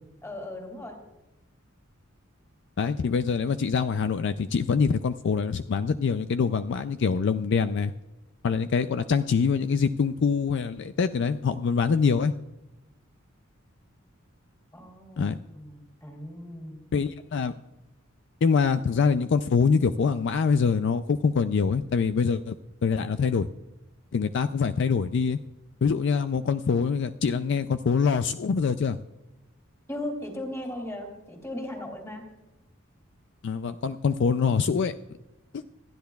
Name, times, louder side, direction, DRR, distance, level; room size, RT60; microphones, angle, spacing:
voice 1, 0.2-1.0 14.7-16.8 29.9-32.3, left 1 dB, 15° left, 2 dB, 2.7 m, -37 dB
voice 2, 2.8-7.9 8.4-12.3 15.2-15.4 16.9-17.5 18.4-22.6 22.8-23.5 24.1-25.4 25.8-29.0 33.4-34.9 35.5-35.6, left 5 dB, 55° left, 11 dB, 0.4 m, -24 dB
27.0 x 10.5 x 2.3 m, 1.0 s
head